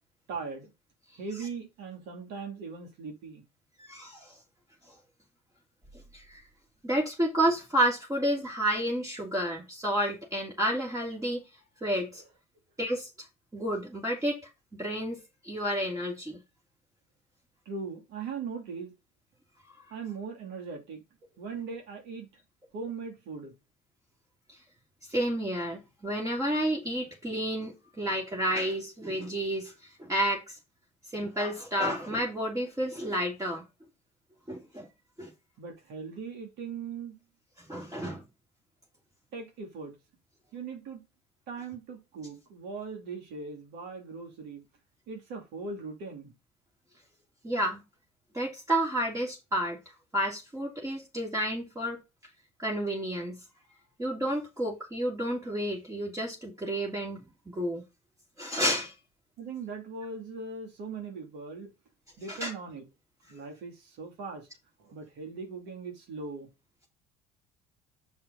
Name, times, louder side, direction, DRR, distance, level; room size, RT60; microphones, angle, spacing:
voice 1, 0.3-0.7 1.2-3.4 17.6-18.9 19.9-21.0 21.4-22.3 22.7-23.5 35.6-37.1 39.3-39.9 40.5-41.0 41.5-44.6 45.1-46.3 59.4-61.7 62.2-62.8 63.3-64.5 64.8-66.5, right 4 dB, 70° right, 3.1 m, -39 dB
voice 2, 3.8-4.3 6.1-6.4 6.8-11.4 11.8-12.2 12.8-13.1 13.5-14.4 14.8-15.2 15.4-16.4 25.1-29.7 30.0-30.6 31.1-33.6 34.5-34.9 35.2-35.3 37.7-38.2 47.4-47.8 48.3-49.8 50.1-52.0 52.6-53.4 54.0-57.2 57.5-57.8 58.4-58.9 62.3-62.5, right 1 dB, 15° right, 2.9 m, -30 dB
7.2 x 5.4 x 4.1 m
hypercardioid pair, 70°, 18 cm